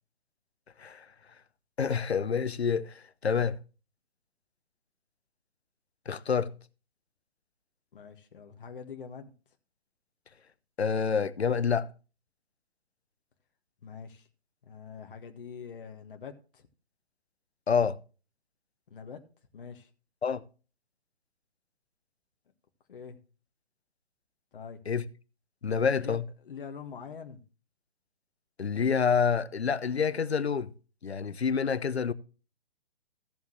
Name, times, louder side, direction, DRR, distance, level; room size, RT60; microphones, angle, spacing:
voice 1, 1.8-3.6 6.1-6.5 10.8-11.9 17.7-18.0 20.2-20.4 24.9-25.0 25.6-26.2 28.6-30.7 31.0-32.1, left 6 dB, 80° left, 0.8 m, -27 dB
voice 2, 7.9-9.3 13.8-14.3 14.6-16.7 18.9-19.2 19.5-19.9 22.9-23.2 24.5-24.8 25.9-27.4, left 6 dB, 55° left, 1.6 m, -44 dB
15.5 x 7.2 x 3.1 m
figure-of-eight pair, 135°, 31 cm